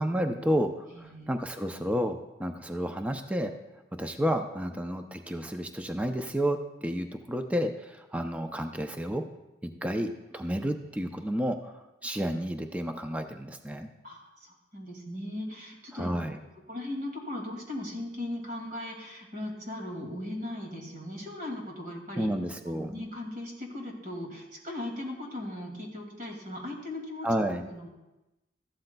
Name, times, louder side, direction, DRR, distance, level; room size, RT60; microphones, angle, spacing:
voice 1, 0.0-3.5 4.0-9.2 9.6-13.9 15.9-16.4 22.2-22.9 27.2-27.6, equal, 10° right, 6 dB, 0.4 m, -31 dB
voice 2, 0.9-1.4 14.0-16.1 16.7-22.3 22.7-27.3 27.6-27.9, left 1 dB, 50° right, 0 dB, 2.1 m, -38 dB
14.0 x 11.5 x 2.2 m, 1.0 s
head